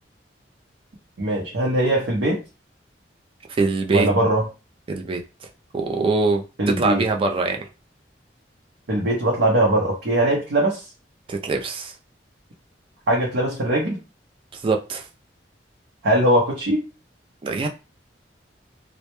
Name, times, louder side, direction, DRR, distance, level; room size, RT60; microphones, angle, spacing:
voice 1, 1.2-2.4 3.9-4.4 6.6-7.0 8.9-10.8 13.1-14.0 16.0-16.8, right 1 dB, 90° right, -3 dB, 0.6 m, -20 dB
voice 2, 3.5-4.1 4.9-5.2 5.7-7.7 11.3-11.9 14.6-15.0 17.4-17.7, right 3 dB, 30° right, 4 dB, 0.3 m, -23 dB
2.1 x 2.0 x 2.9 m, 0.31 s
head